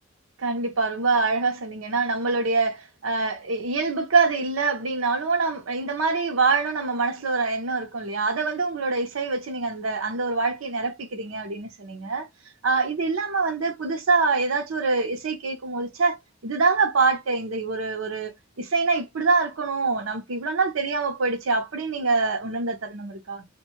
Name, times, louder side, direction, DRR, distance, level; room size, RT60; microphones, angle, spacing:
voice 1, 0.4-12.3 12.6-16.2 16.4-23.5, right 4 dB, 75° right, 0.7 m, -25 dB
2.6 x 2.2 x 3.0 m
head